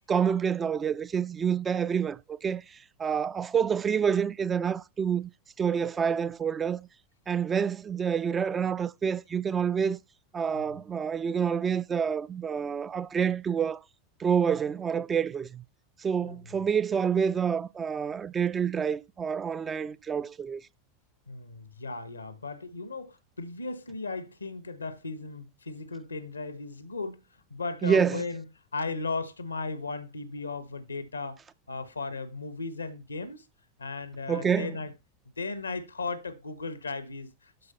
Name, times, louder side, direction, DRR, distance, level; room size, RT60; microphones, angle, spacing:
voice 1, 0.1-5.3 5.6-6.9 7.3-10.0 10.3-13.8 14.2-15.6 16.0-20.6 27.8-28.2 34.3-34.7, right 7 dB, 25° right, 0.5 m, -28 dB
voice 2, 21.3-27.2 27.5-28.4 28.7-31.4 31.7-33.4 33.8-34.9 35.4-37.7, left 3 dB, 85° left, 1.1 m, -36 dB
12.0 x 5.0 x 4.1 m
figure-of-eight pair, 80°, 0 cm